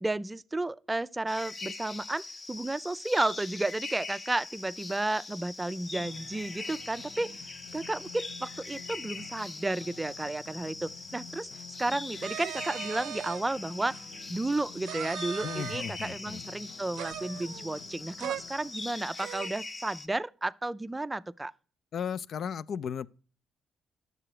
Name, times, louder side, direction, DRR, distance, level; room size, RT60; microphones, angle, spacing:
voice 1, 0.0-7.3 7.7-11.5 11.8-14.0 14.3-21.5, right 2 dB, 15° right, 0.4 m, -32 dB
sound 1, 1.3-20.1, left 3 dB, 35° left, 0.9 m, -42 dB
sound 2, 5.7-18.8, left 4 dB, 80° left, 1.7 m, -51 dB
sound 3, 12.2-13.4 13.9-14.0 14.8-16.1 16.9-17.9 18.2-18.4 18.8-18.9 19.2-19.6, right 11 dB, 90° right, 0.6 m, -39 dB
voice 2, 15.4-16.4 21.9-23.1, left 7 dB, 60° left, 0.4 m, -35 dB
9.8 x 6.7 x 4.8 m
cardioid pair, 90°, 0 cm